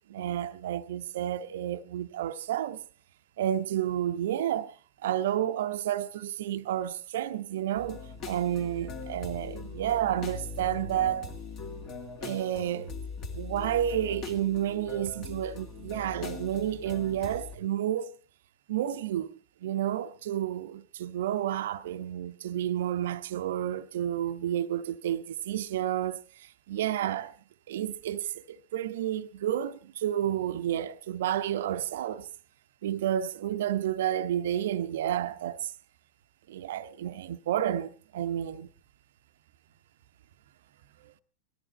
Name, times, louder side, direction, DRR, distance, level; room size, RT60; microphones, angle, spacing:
voice 1, 0.1-2.8 3.4-4.7 5.0-11.3 12.2-12.9 13.3-18.1 18.7-27.3 27.7-32.3 32.8-35.7 36.5-38.7 41.0-41.1, right 11 dB, 55° right, 0.7 m, -31 dB
sound 1, 7.7-17.6, left 3 dB, 35° left, 2.1 m, -41 dB
18.5 x 13.5 x 4.2 m
figure-of-eight pair, 90°, 0 cm